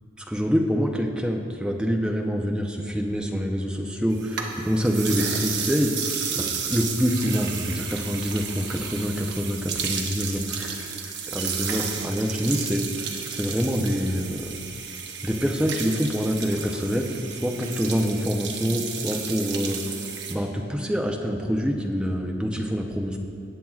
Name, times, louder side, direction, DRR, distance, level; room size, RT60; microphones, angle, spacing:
voice 1, 0.3-5.9 6.3-10.7 11.3-14.6 15.2-19.8 20.3-23.2, equal, 5° right, 1 dB, 0.6 m, -26 dB
sound 1, 4.1-20.3, right 6 dB, 60° right, 0.9 m, -32 dB
18.0 x 7.5 x 2.4 m, 2.6 s
head